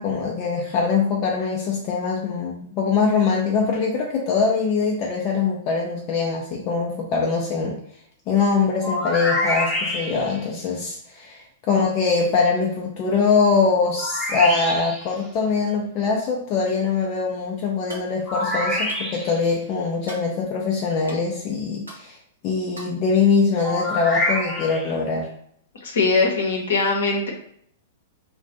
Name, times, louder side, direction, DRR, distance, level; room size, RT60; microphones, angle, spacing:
voice 1, 0.0-7.8 8.3-22.2 22.4-25.3, left 5 dB, 35° left, -1 dB, 0.5 m, -22 dB
sound 1, 8.8-10.4 14.0-15.1 18.3-19.5 23.6-24.9, left 1 dB, 5° left, 0.7 m, -26 dB
sound 2, 17.9-18.1 18.9-19.1 20.0-20.3 21.1-21.2 21.9-22.0 22.8-23.0, right 1 dB, 80° right, 0.7 m, -38 dB
voice 2, 25.8-27.3, left 3 dB, 60° left, 1 dB, 0.8 m, -21 dB
2.4 x 2.2 x 3.8 m, 0.65 s
figure-of-eight pair, 100°, 0 cm